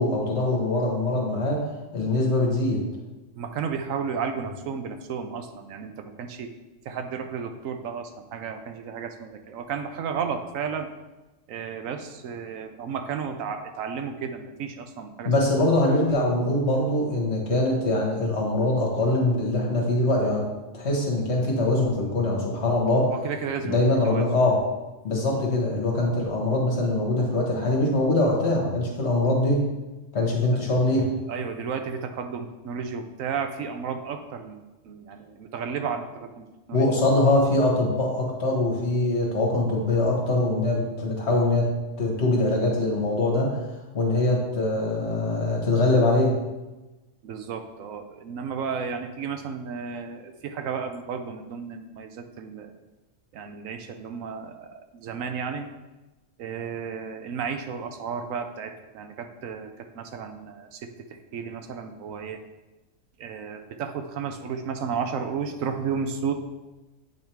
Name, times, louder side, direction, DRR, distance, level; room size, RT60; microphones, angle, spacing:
voice 1, 0.0-1.6 1.9-2.8 15.2-20.4 20.7-23.1 23.6-24.6 25.0-29.6 30.1-31.1 36.7-41.7 42.0-43.6 43.9-46.3, left 2 dB, 55° left, -2 dB, 1.6 m, -23 dB
voice 2, 3.4-6.5 6.9-10.9 11.5-15.3 23.2-23.8 24.1-24.2 30.5-30.6 31.3-36.9 47.2-52.7 53.3-54.7 54.9-55.7 56.4-59.7 59.9-60.9 61.3-62.4 63.2-66.3, right 6 dB, 75° right, 6 dB, 1.0 m, -33 dB
8.1 x 3.4 x 4.5 m, 1.1 s
omnidirectional pair, 1.4 m